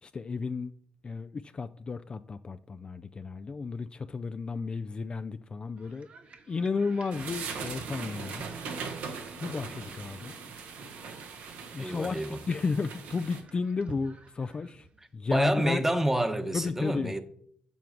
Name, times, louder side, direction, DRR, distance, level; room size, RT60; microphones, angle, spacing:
voice 1, 0.0-0.7 1.0-6.1 6.5-8.4 9.4-10.3 10.6-10.9 11.7-14.9 15.1-15.8 16.5-17.2, left 4 dB, 35° left, 0.3 m, -33 dB
sound 1, 5.8-15.1, right 4 dB, 55° right, 1.0 m, -52 dB
sound 2, 7.1-13.4, right 5 dB, 85° right, 1.1 m, -40 dB
voice 2, 11.8-12.4 15.3-17.2, right 1 dB, 15° right, 0.9 m, -28 dB
7.2 x 4.7 x 5.9 m
cardioid pair, 70°, 3 cm